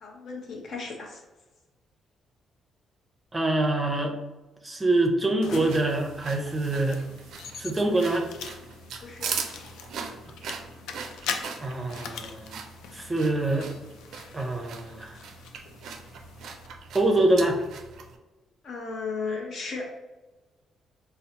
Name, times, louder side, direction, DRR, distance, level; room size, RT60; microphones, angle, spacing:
voice 1, 0.0-1.2 9.0-9.3 18.6-19.9, left 4 dB, 60° left, 0 dB, 0.7 m, -35 dB
voice 2, 3.3-4.2 4.6-7.0 7.6-8.3 11.6-12.6 12.9-13.7 14.3-15.2 16.9-17.6, right 2 dB, 20° right, 1 dB, 0.5 m, -25 dB
sound 1, 5.4-16.7, left 6 dB, 85° left, 0.3 m, -42 dB
sound 2, 5.5-18.2, right 5 dB, 75° right, 0.3 m, -40 dB
4.0 x 2.0 x 2.8 m, 1.1 s
cardioid pair, 90°, 0 cm